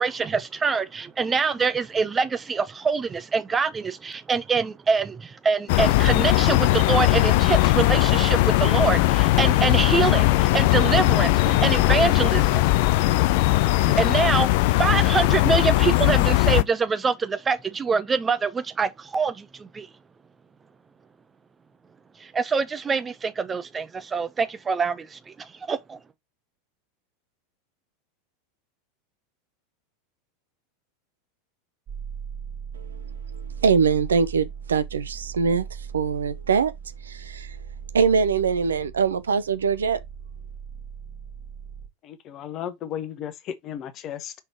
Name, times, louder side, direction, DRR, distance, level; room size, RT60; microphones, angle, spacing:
voice 1, 0.0-12.6 13.4-13.5 13.8-14.5 14.8-19.9 22.2-26.0, right 5 dB, 20° right, 0.9 m, -25 dB
sound 1, 5.7-16.6, left 18 dB, 55° left, 0.5 m, -19 dB
sound 2, 31.9-41.9, right 7 dB, 35° right, 1.6 m, -38 dB
voice 2, 33.3-35.7 35.9-36.7 37.0-37.6 37.9-40.0, right 6 dB, 75° right, 0.6 m, -23 dB
voice 3, 42.0-44.3, left 10 dB, 40° left, 1.0 m, -34 dB
5.7 x 4.0 x 4.6 m
figure-of-eight pair, 85°, 0 cm